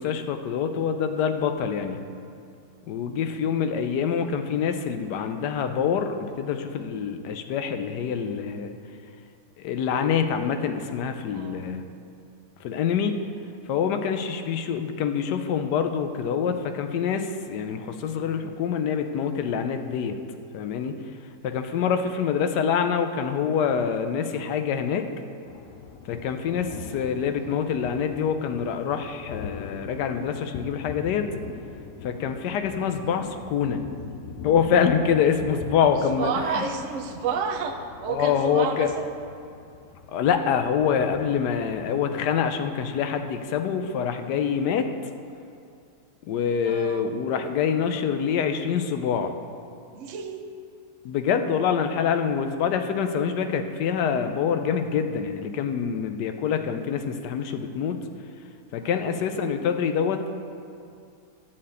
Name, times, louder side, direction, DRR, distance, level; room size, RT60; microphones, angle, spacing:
voice 1, 0.0-2.0 2.9-8.7 9.6-11.8 12.6-13.1 13.7-20.2 20.5-20.9 21.4-25.0 26.1-31.3 32.0-33.8 34.4-36.6 38.1-38.9 40.1-44.9 46.3-49.3 51.0-58.0 58.7-60.4, left 7 dB, 90° left, 7 dB, 1.2 m, -25 dB
voice 2, 11.3-11.7 36.0-39.0 46.6-47.1 49.9-50.4 58.8-59.1, right 5 dB, 55° right, 4 dB, 1.0 m, -31 dB
sound 1, 25.4-43.6, left 6 dB, 65° left, 0.9 m, -43 dB
11.0 x 4.4 x 7.9 m, 2.4 s
omnidirectional pair, 1.8 m